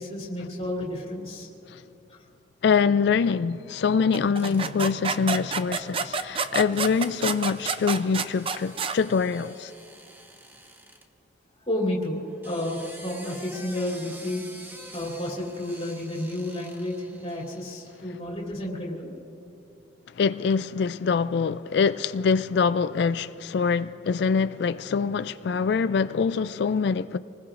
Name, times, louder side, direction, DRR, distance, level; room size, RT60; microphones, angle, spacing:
voice 1, 0.0-1.5 2.1-2.2 11.6-14.4 14.9-19.1, left 1 dB, 30° left, 2.9 m, -31 dB
voice 2, 2.6-9.7 20.1-27.2, left 5 dB, 60° left, 0.3 m, -24 dB
sound 1, 4.1-9.0, right 5 dB, 30° right, 0.5 m, -29 dB
sound 2, 4.4-4.9 6.7-11.0 12.2-18.1, right 1 dB, 10° right, 1.0 m, -47 dB
27.0 x 20.0 x 2.5 m
head